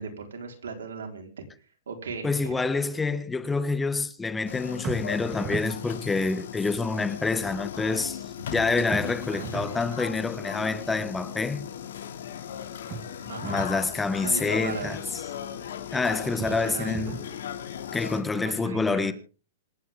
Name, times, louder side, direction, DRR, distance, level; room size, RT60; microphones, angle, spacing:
voice 1, 0.0-1.4 1.9-2.6 9.3-9.7 10.0-10.2 13.3-13.6 14.2-15.0 16.1-17.4 18.0-19.1, right 5 dB, 85° right, 4.6 m, -38 dB
voice 2, 2.2-8.2 8.5-11.7 13.4-15.0 15.9-17.2 17.9-19.1, left 4 dB, 10° left, 1.3 m, -27 dB
sound 1, 4.5-18.2, left 9 dB, 75° left, 2.8 m, -37 dB
sound 2, 4.8-5.8 8.9-9.8 12.9-13.8 16.4-17.3, right 5 dB, 25° right, 2.0 m, -37 dB
27.0 x 9.3 x 3.8 m
hypercardioid pair, 130°, 0 cm